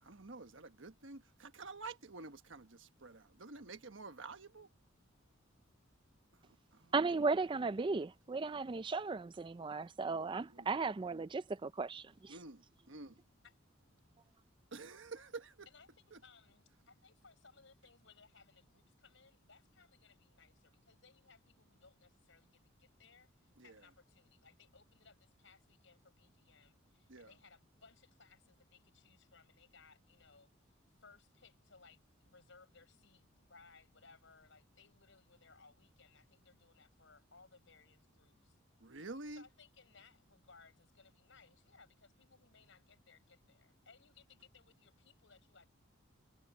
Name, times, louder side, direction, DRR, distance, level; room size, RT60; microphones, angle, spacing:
voice 1, 0.0-4.7 6.4-7.1 10.1-10.2 10.5-10.7 11.1-11.3 12.3-12.6 12.9-13.1 14.7-15.7 16.1-16.2 23.6-23.8 27.1-27.3 38.8-39.4, right 3 dB, 70° right, 1.4 m, -50 dB
voice 2, 6.9-12.0, right 4 dB, 25° right, 0.4 m, -35 dB
voice 3, 15.7-38.6 39.3-45.7, left 5 dB, 70° left, 6.3 m, -64 dB
head